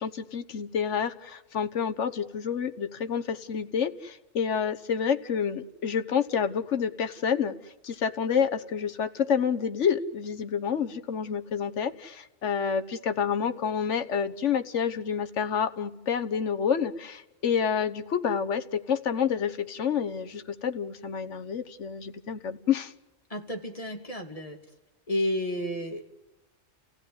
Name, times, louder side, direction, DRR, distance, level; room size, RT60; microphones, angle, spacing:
voice 1, 0.0-7.5 7.8-22.9, left 7 dB, 70° left, 9 dB, 1.5 m, -28 dB
voice 2, 23.3-24.6 25.1-26.0, left 1 dB, 25° left, 3 dB, 2.9 m, -31 dB
30.0 x 16.0 x 9.6 m, 1.0 s
omnidirectional pair, 1.3 m